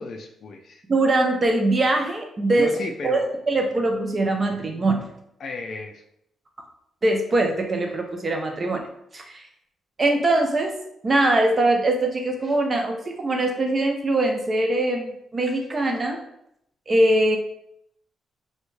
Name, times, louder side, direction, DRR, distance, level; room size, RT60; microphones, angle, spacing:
voice 1, 0.0-0.8 2.6-3.3 5.4-6.0, left 3 dB, 50° left, 3 dB, 0.3 m, -33 dB
voice 2, 0.9-2.7 3.0-5.0 7.0-8.8 9.1-9.4 10.0-10.8 11.0-16.2 16.9-17.4, right 2 dB, 30° right, 3 dB, 0.4 m, -22 dB
3.4 x 2.1 x 3.1 m, 0.76 s
cardioid pair, 120°, 0 cm